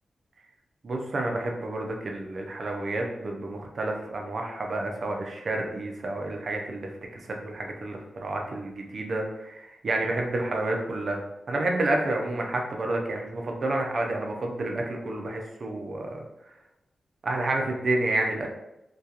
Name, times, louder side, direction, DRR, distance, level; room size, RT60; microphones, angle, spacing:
voice 1, 0.8-6.9 7.2-11.2 11.5-16.2 17.2-18.5, right 2 dB, 55° right, 1 dB, 0.5 m, -29 dB
2.3 x 2.3 x 2.8 m, 0.90 s
cardioid pair, 85°, 0 cm